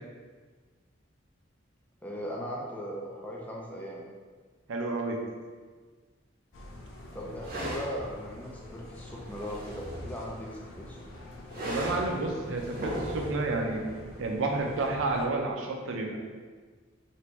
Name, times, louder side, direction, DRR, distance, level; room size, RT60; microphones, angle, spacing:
voice 1, 2.0-4.0 7.1-11.1, equal, 10° left, -3 dB, 0.4 m, -38 dB
voice 2, 4.7-5.2 11.6-13.8 14.2-16.2, right 2 dB, 85° right, 1 dB, 0.5 m, -30 dB
sound 1, 6.5-15.3, left 1 dB, 90° left, 0.5 m, -46 dB
sound 2, 7.4-7.9 9.1-10.2 11.5-12.1 12.6-13.4, equal, 45° right, 0.7 m, -36 dB
3.3 x 2.5 x 3.0 m, 1.5 s
head